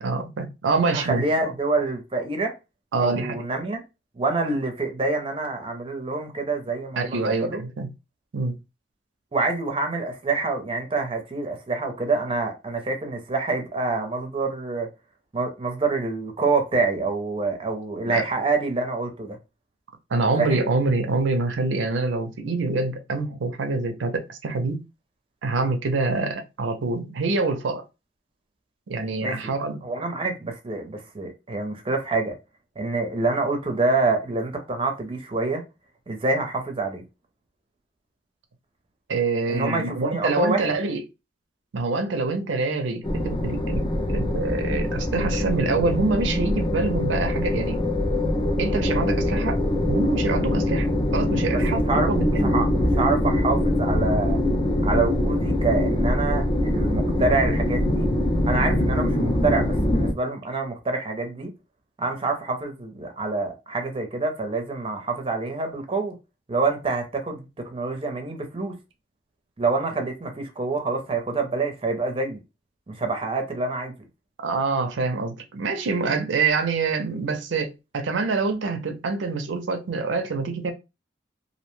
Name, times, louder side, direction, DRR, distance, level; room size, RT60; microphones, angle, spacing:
voice 1, 0.0-1.5 2.9-3.4 7.0-7.9 8.3-8.6 18.1-18.2 20.1-24.8 25.4-27.8 28.9-29.8 39.1-41.0 41.7-47.8 48.6-50.9 51.1-52.5 74.4-80.7, right 3 dB, 80° right, 0.5 m, -26 dB
voice 2, 0.9-2.5 3.0-3.8 4.2-7.6 9.3-14.9 15.3-19.4 20.4-20.6 29.2-29.5 29.8-32.3 32.8-35.6 36.1-37.0 39.5-40.7 51.5-52.1 52.4-54.4 54.8-58.1 58.4-61.5 62.0-66.1 66.5-68.7 69.6-72.4 72.9-73.9, right 3 dB, 30° right, 0.5 m, -26 dB
sound 1, 43.0-60.1, left 1 dB, 25° left, 0.4 m, -23 dB
2.5 x 2.1 x 3.0 m
head